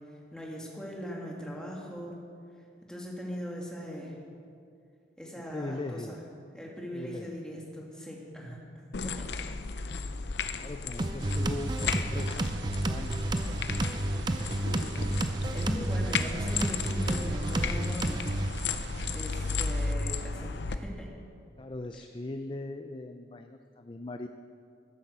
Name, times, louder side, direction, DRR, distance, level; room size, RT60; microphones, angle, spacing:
voice 1, 0.3-2.2 2.9-4.1 5.2-6.2 6.5-8.6 9.0-9.2 15.5-18.2 19.1-21.1, equal, 5° left, -3 dB, 2.1 m, -39 dB
voice 2, 5.5-6.2 6.9-7.3 10.5-13.6 21.6-24.3, left 2 dB, 30° left, 7 dB, 0.4 m, -40 dB
sound 1, 8.9-20.8, left 4 dB, 80° left, 0.7 m, -34 dB
sound 2, 11.0-18.5, right 1 dB, 25° right, 0.5 m, -31 dB
sound 3, 11.2-19.9, right 5 dB, 85° right, 0.4 m, -43 dB
13.0 x 10.0 x 6.8 m, 2.4 s
head